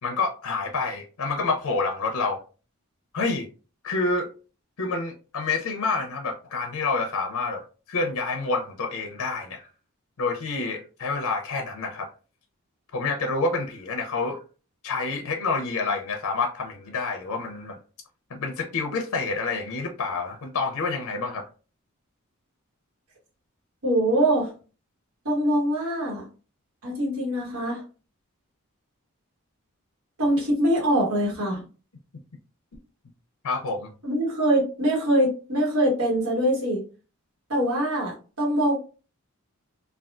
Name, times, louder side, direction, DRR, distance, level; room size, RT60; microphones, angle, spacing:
voice 1, 0.0-2.4 3.1-3.5 3.8-4.3 4.8-9.7 10.2-12.1 12.9-14.4 14.8-17.8 18.3-21.4 33.4-33.9, left 3 dB, 85° left, 3 dB, 0.6 m, -28 dB
voice 2, 23.8-24.5 25.2-26.2 26.8-27.8 30.2-31.6 34.0-36.8 37.5-38.8, right 1 dB, 80° right, -3 dB, 1.3 m, -23 dB
3.4 x 2.3 x 2.4 m, 0.36 s
head